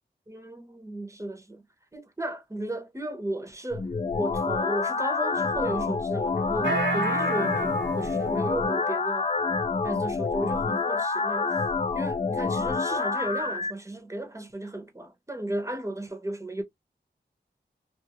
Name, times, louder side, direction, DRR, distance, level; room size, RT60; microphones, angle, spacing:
voice 1, 0.3-1.6 1.9-9.3 9.8-11.6 11.9-16.6, right 1 dB, 15° right, 0.8 m, -34 dB
sound 1, 3.7-13.7, left 4 dB, 35° left, 0.4 m, -27 dB
sound 2, 6.6-8.6, right 3 dB, 85° right, 1.0 m, -30 dB
2.6 x 2.4 x 2.8 m
wide cardioid pair, 65°, 19 cm